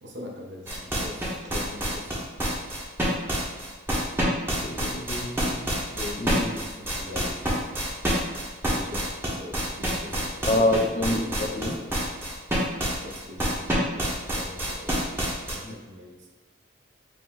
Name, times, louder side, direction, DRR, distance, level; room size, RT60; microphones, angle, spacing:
voice 1, 0.0-2.4 5.9-7.8 8.6-12.0 13.0-15.0 15.5-16.3, left 1 dB, 65° right, 0 dB, 0.8 m, -42 dB
sound 1, 0.7-15.5, equal, 10° right, 0.7 m, -27 dB
voice 2, 4.6-5.7 6.2-6.6 10.5-11.8 15.6-15.7, left 1 dB, 30° left, 3 dB, 0.3 m, -27 dB
5.0 x 2.1 x 3.6 m, 1.3 s
head